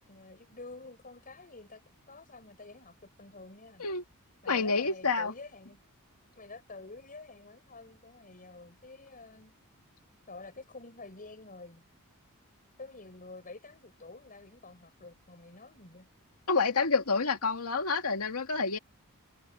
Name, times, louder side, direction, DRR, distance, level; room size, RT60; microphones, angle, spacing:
voice 1, 0.0-3.9 4.4-5.8 6.3-9.5 10.3-11.8 12.8-16.1, left 3 dB, 40° left, 6.5 m, -49 dB
voice 2, 4.5-5.3 16.5-18.8, left 4 dB, 85° left, 2.2 m, -28 dB
head